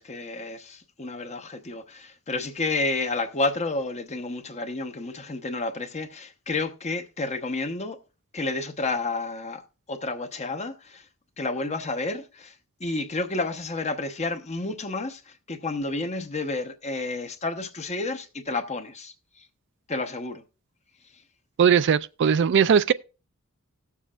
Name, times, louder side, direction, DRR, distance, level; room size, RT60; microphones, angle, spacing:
voice 1, 0.0-8.0 8.3-9.6 9.9-11.0 11.4-12.5 12.8-19.5 19.9-20.4, left 3 dB, 30° left, 0.9 m, -30 dB
voice 2, 21.6-22.9, right 7 dB, 55° right, 0.4 m, -19 dB
18.0 x 7.2 x 2.4 m
head